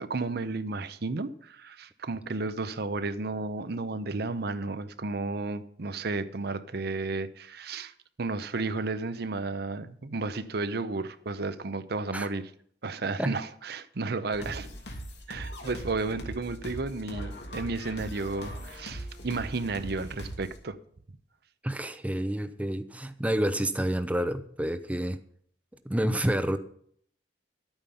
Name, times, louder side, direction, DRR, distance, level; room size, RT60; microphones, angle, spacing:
voice 1, 0.0-7.9 8.2-12.5 12.8-14.7 15.3-20.8, right 3 dB, 65° right, 0.7 m, -33 dB
sound 1, 14.3-20.6, equal, 75° left, 2.6 m, -40 dB
voice 2, 21.6-25.2 25.9-26.6, right 1 dB, 10° right, 0.6 m, -29 dB
11.5 x 8.9 x 5.6 m
head